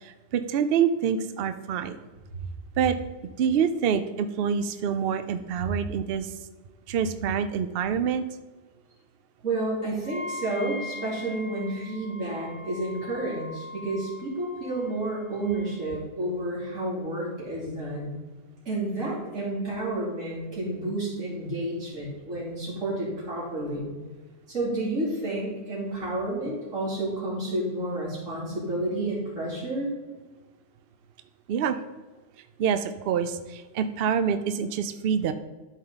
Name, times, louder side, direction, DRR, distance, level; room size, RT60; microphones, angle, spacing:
voice 1, 0.0-2.0 2.8-3.0 3.4-6.3 6.9-8.2 31.5-31.8 32.6-35.3, right 7 dB, 60° right, 10 dB, 0.6 m, -26 dB
voice 2, 9.4-18.1 18.7-23.9 24.5-29.9, right 2 dB, 80° right, -6 dB, 3.4 m, -30 dB
Wind instrument woodwind instrument, 10.0-15.9, left 1 dB, 65° left, 1.6 m, -41 dB
11.5 x 4.6 x 3.9 m, 1.3 s
omnidirectional pair, 1.3 m